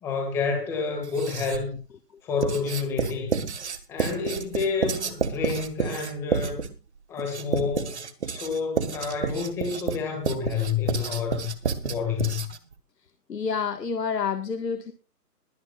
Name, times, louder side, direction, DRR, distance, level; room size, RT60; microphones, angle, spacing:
voice 1, 0.0-1.7 2.2-3.4 3.9-6.6 7.1-11.5 11.8-12.5, left 5 dB, 5° left, 2.0 m, -29 dB
Writing, 1.0-1.8 2.4-12.7, right 6 dB, 45° right, 1.7 m, -30 dB
voice 2, 13.3-14.9, left 6 dB, 85° left, 1.7 m, -28 dB
22.0 x 10.0 x 2.5 m
hypercardioid pair, 175°, 48 cm